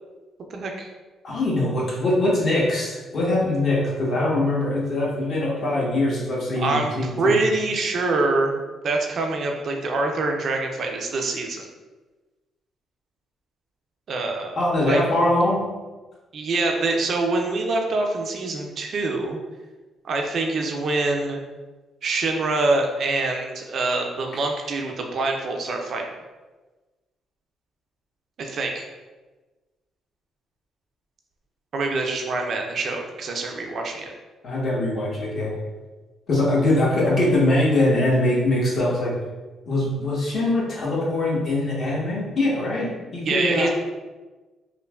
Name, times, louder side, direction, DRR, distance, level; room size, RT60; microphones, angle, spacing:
voice 1, 0.5-0.9 6.6-6.9 7.2-11.6 14.1-14.6 14.8-15.0 16.3-19.4 20.0-21.4 22.0-26.1 28.4-28.9 31.7-34.1 43.3-43.7, right 3 dB, 60° right, 2 dB, 0.4 m, -25 dB
voice 2, 1.2-7.3 14.6-15.7 34.4-35.5 36.3-39.1 39.7-43.7, left 1 dB, 55° left, -5 dB, 0.9 m, -22 dB
3.0 x 2.0 x 2.2 m, 1.2 s
cardioid pair, 90°, 0 cm